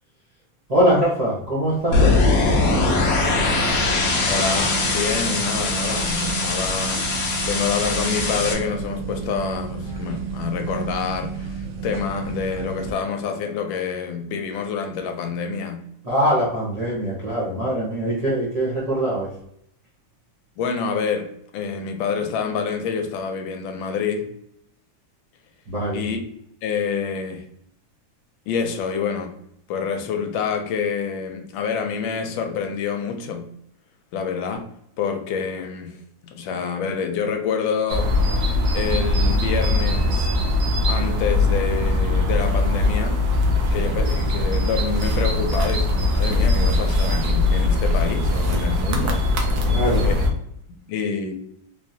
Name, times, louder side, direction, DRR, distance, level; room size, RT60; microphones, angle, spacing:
voice 1, 0.7-2.2 16.0-19.3 25.7-26.0 49.6-50.1, right 1 dB, 35° right, 0.6 m, -22 dB
sound 1, 1.9-8.5, left 3 dB, 60° left, 0.7 m, -21 dB
sound 2, 1.9-12.9, right 5 dB, 85° right, 0.6 m, -31 dB
voice 2, 4.3-7.1 7.5-15.8 20.6-24.3 25.9-26.2 26.6-27.4 28.5-29.3 29.7-33.5 34.1-34.7 35.0-36.0 36.2-38.1 38.7-40.3 40.9-43.2 43.7-49.3 50.0-50.2 50.7-51.3, left 6 dB, 85° left, 1.4 m, -27 dB
sound 3, 37.9-50.3, left 2 dB, 65° right, 1.1 m, -21 dB
3.5 x 3.1 x 2.7 m
omnidirectional pair, 2.1 m